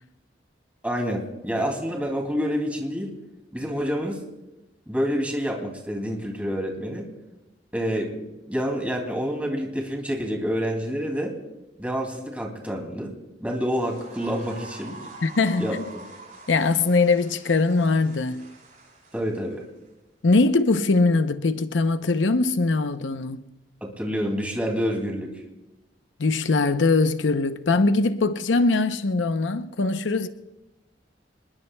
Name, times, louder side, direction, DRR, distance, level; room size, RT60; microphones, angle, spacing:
voice 1, 0.8-3.1 3.5-4.2 4.9-7.1 7.7-11.3 11.8-13.1 13.4-15.0 15.6-15.8 19.1-19.6 23.8-25.3, equal, 10° right, 2.6 m, -28 dB
sound 1, 13.6-19.9, right 3 dB, 45° right, 7.7 m, -46 dB
voice 2, 15.2-15.8 16.5-18.5 20.2-23.4 26.2-30.3, left 3 dB, 90° left, 0.7 m, -21 dB
27.0 x 20.5 x 2.3 m
head